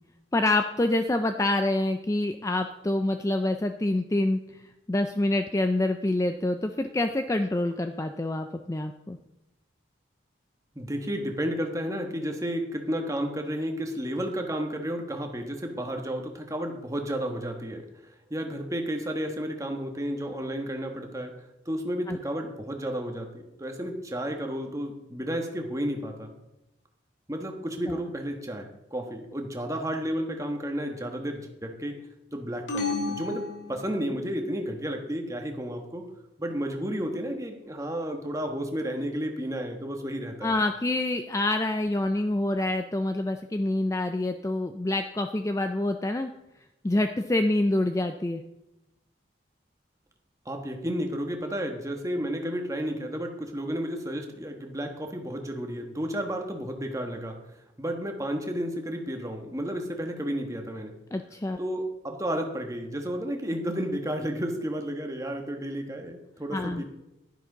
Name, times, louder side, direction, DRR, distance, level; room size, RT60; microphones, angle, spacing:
voice 1, 0.3-4.4 4.9-9.2 22.1-22.2 27.9-28.0 40.4-46.3 46.8-48.4 61.1-61.6 66.5-66.8, left 2 dB, 15° left, 7 dB, 0.4 m, -26 dB
voice 2, 10.7-17.8 18.3-21.3 21.6-26.3 27.3-32.0 32.3-33.4 33.7-36.1 36.4-40.5 50.4-57.4 57.8-61.0 61.6-66.8, equal, 15° right, 3 dB, 1.3 m, -32 dB
sound 1, 32.7-34.4, left 3 dB, 85° left, 1.9 m, -33 dB
11.5 x 10.0 x 4.0 m, 0.92 s
head